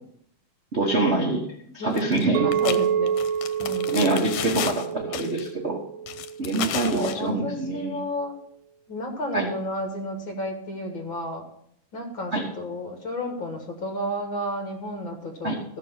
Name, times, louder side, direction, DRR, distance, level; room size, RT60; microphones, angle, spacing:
voice 1, 0.7-1.4 1.7-2.5 3.9-5.8 6.4-8.0 9.3-9.5 12.3-12.4 15.4-15.6, right 2 dB, 65° right, -1 dB, 0.6 m, -25 dB
sound 1, 2.0-2.2 2.5-4.9 5.1-5.5 6.1-7.2, left 11 dB, 80° left, 2.1 m, -32 dB
Chink clink, 2.3-6.6, right 8 dB, 85° right, 2.2 m, -27 dB
voice 2, 2.4-3.2 3.6-4.1 6.6-8.4 8.9-11.4 11.9-15.8, left 1 dB, 45° left, 2 dB, 1.9 m, -32 dB
14.0 x 6.6 x 5.6 m, 0.70 s
omnidirectional pair, 3.6 m